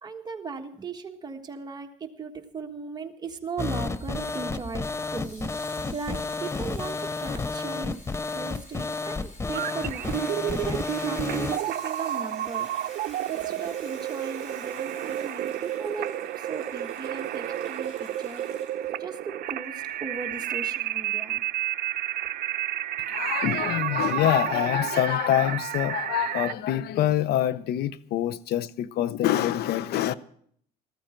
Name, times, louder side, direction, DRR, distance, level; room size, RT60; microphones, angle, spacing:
voice 1, 0.0-5.5 5.9-8.0 8.3-10.2 10.5-18.5 19.0-21.4, right 4 dB, 25° right, 1.6 m, -38 dB
sound 1, 3.6-11.6, left 3 dB, 15° left, 0.5 m, -31 dB
Water tap faucet / Sink (filling or washing), 4.9-18.9 19.6-19.7, left 1 dB, 45° left, 5.9 m, -51 dB
sound 2, 9.5-26.5, right 12 dB, 60° right, 0.7 m, -31 dB
voice 2, 23.0-30.1, left 12 dB, 70° left, 0.6 m, -25 dB
14.0 x 14.0 x 4.5 m
cardioid pair, 110°, 17 cm